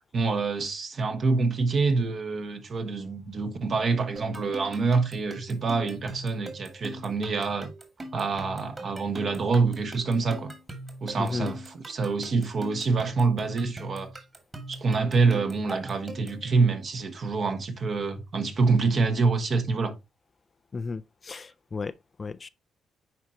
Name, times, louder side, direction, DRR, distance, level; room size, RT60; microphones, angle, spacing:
voice 1, 0.1-7.7 8.1-10.5 11.0-14.1 14.7-19.9, right 4 dB, 50° right, 1.5 m, -26 dB
sound 1, 4.2-16.5, right 1 dB, 25° right, 2.2 m, -42 dB
voice 2, 11.2-11.5 20.7-21.9 22.2-22.5, left 4 dB, 35° left, 0.4 m, -33 dB
10.5 x 4.4 x 2.9 m
cardioid pair, 90°, 0 cm